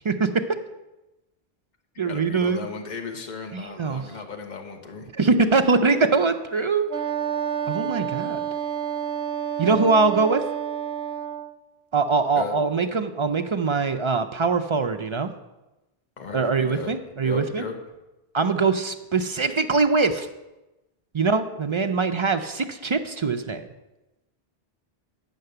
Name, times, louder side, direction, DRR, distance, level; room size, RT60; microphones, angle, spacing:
voice 1, 0.1-0.5 2.0-2.7 3.5-4.0 5.2-6.9 7.7-8.5 9.6-10.4 11.9-15.3 16.3-17.6 18.3-20.3 21.1-23.7, right 4 dB, 45° right, 7 dB, 0.4 m, -22 dB
voice 2, 2.0-5.1 12.3-12.5 16.2-16.9 17.2-17.8, left 5 dB, 45° left, 4 dB, 1.1 m, -35 dB
Wind instrument woodwind instrument, 6.9-11.5, right 9 dB, 90° right, 1.0 m, -29 dB
9.3 x 5.8 x 6.6 m, 1.0 s
omnidirectional pair, 1.1 m